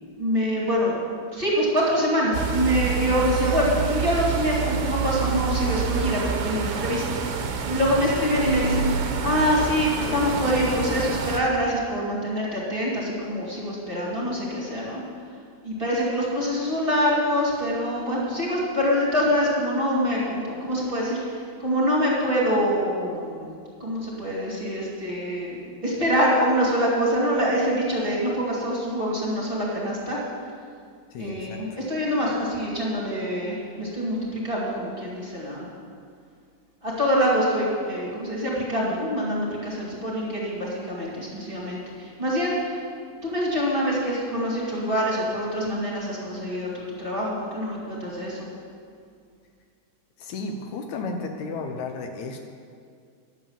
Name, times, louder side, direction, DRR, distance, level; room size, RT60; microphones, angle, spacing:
voice 1, 0.2-1.0 1.3-7.0 7.3-7.4 7.7-15.0 15.6-23.5 23.8-30.2 31.2-35.7 36.8-42.8 43.2-48.5, equal, 20° right, -6 dB, 2.2 m, -25 dB
sound 1, 2.3-11.4, right 6 dB, 65° right, 1.5 m, -27 dB
voice 2, 31.1-31.6 50.2-52.4, left 3 dB, 75° left, 4 dB, 2.1 m, -33 dB
11.0 x 8.1 x 7.2 m, 2.2 s
omnidirectional pair, 3.5 m